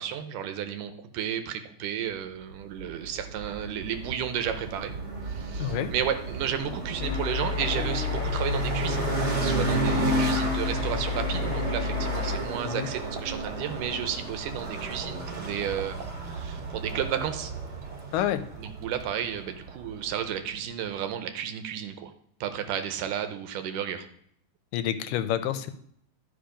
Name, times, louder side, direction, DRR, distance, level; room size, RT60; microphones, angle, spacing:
voice 1, 0.0-4.9 5.3-9.1 9.4-17.5 18.6-22.1 22.4-24.1, right 9 dB, 80° right, 8 dB, 2.3 m, -33 dB
sound 1, 2.8-20.2, right 2 dB, 35° right, 2.2 m, -32 dB
voice 2, 5.6-5.9 12.6-12.9 18.1-18.4 24.7-25.7, left 11 dB, 80° left, 11 dB, 2.2 m, -28 dB
sound 2, 7.0-12.4, left 6 dB, 40° left, 1.3 m, -31 dB
sound 3, 7.4-19.4, right 4 dB, 65° right, 2.0 m, -46 dB
12.0 x 5.1 x 5.0 m, 0.68 s
omnidirectional pair, 3.9 m